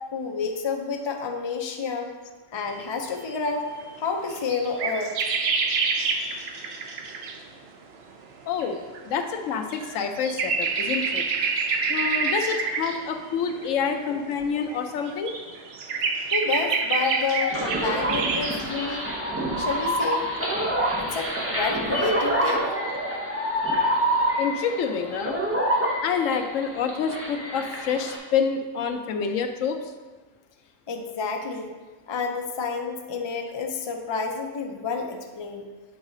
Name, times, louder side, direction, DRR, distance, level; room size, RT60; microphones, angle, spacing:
voice 1, 0.1-2.1 2.5-3.7 4.0-5.3 16.3-19.1 19.6-20.3 21.0-22.6 30.9-31.8 32.1-35.6, left 4 dB, 50° left, 3 dB, 0.3 m, -29 dB
sound 1, 2.8-2.9 3.2-3.4 3.8-7.4 8.6-8.7 8.9-14.3 14.7-18.6, right 4 dB, 60° right, 0.8 m, -27 dB
voice 2, 5.6-6.7 8.5-8.8 9.0-11.2 11.9-15.3 17.4-17.5 24.4-25.4 26.0-29.9, left 6 dB, 80° left, 6 dB, 1.0 m, -28 dB
sound 2, 17.5-28.2, right 1 dB, 15° right, 0.7 m, -27 dB
7.2 x 4.0 x 3.8 m, 1.3 s
omnidirectional pair, 1.3 m